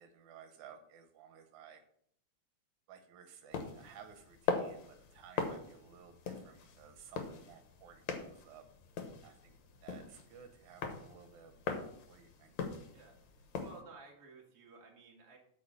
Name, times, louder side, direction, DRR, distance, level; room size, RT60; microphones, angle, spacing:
voice 1, 0.0-1.8 2.9-8.7 9.2-9.5 9.8-12.5, right 7 dB, 80° right, 7 dB, 2.3 m, -56 dB
sound 1, 3.5-13.8, left 5 dB, 70° left, 2.4 m, -41 dB
voice 2, 12.9-15.4, right 3 dB, 35° right, -1 dB, 2.3 m, -55 dB
8.5 x 5.1 x 6.7 m, 0.67 s
omnidirectional pair, 3.4 m